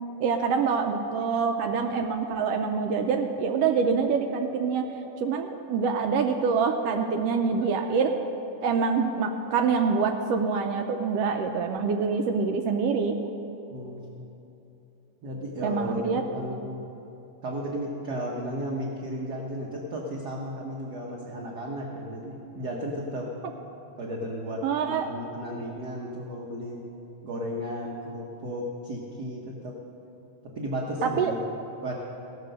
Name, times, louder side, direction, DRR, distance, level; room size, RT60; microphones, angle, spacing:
voice 1, 0.2-4.9 5.2-8.1 8.6-13.2 15.6-16.2 24.6-25.1 31.0-31.3, right 5 dB, 80° right, 4 dB, 1.4 m, -25 dB
voice 2, 13.7-14.2 15.2-16.8 17.4-23.3 24.0-26.8 27.2-29.8 30.5-31.4 31.8-31.9, equal, 65° right, -2 dB, 1.0 m, -34 dB
16.5 x 6.7 x 6.5 m, 3.0 s
omnidirectional pair, 3.3 m